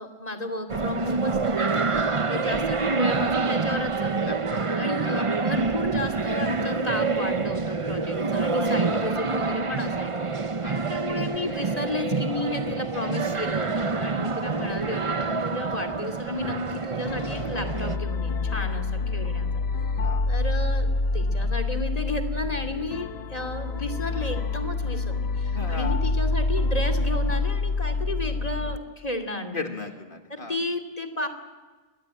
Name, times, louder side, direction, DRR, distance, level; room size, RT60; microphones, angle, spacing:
voice 1, 0.0-4.1 4.7-10.3 10.7-19.6 20.3-29.7 30.3-31.3, left 1 dB, 35° left, 6 dB, 2.7 m, -33 dB
sound 1, 0.7-18.0, right 4 dB, 30° right, 0.9 m, -27 dB
voice 2, 4.2-4.8 5.1-5.3 10.6-10.9 13.2-13.3 18.5-18.7 20.0-20.2 25.5-26.0 29.5-30.6, left 3 dB, 55° left, 5 dB, 2.1 m, -36 dB
sound 2, 17.1-28.8, left 3 dB, 75° left, 1.3 m, -27 dB
29.5 x 22.0 x 8.9 m, 1.3 s
omnidirectional pair, 1.1 m